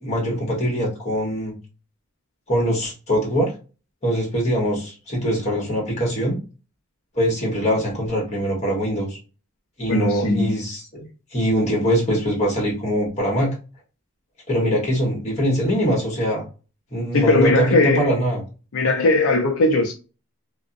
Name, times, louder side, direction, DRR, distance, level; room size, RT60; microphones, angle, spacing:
voice 1, 0.0-1.5 2.5-3.5 4.0-6.4 7.1-9.2 9.8-11.1 11.3-13.5 14.5-16.4 16.9-18.4, equal, 30° left, 1.0 m, -22 dB
voice 2, 9.9-10.5 17.1-18.1 18.7-19.9, left 2 dB, 70° left, 0.4 m, -18 dB
2.5 x 2.0 x 2.4 m
head